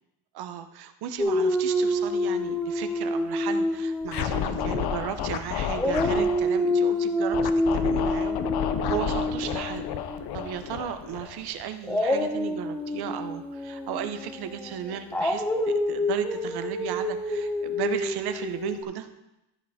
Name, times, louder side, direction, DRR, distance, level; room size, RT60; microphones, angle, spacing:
voice 1, 0.3-8.4 8.9-9.9 10.3-19.1, right 9 dB, 65° right, 9 dB, 0.9 m, -35 dB
Dog, 1.2-5.3 5.7-10.7 11.8-18.8, left 1 dB, 5° left, 0.7 m, -28 dB
Scratching (performance technique), 4.1-6.4 7.3-11.6, left 9 dB, 65° left, 0.8 m, -30 dB
14.0 x 5.6 x 4.2 m, 0.93 s
cardioid pair, 165°, 41 cm